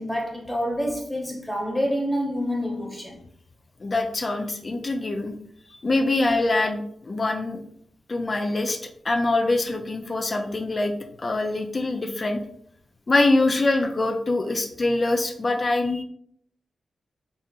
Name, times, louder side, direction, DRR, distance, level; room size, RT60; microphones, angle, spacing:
voice 1, 0.0-3.2, equal, 10° left, 1.3 m, -27 dB
voice 2, 3.8-5.4 5.8-7.6 8.1-8.8 9.0-10.9 11.2-12.4 13.1-16.0, left 2 dB, 45° left, 0.7 m, -24 dB
4.1 x 3.6 x 2.7 m
supercardioid pair, 45°, 0 cm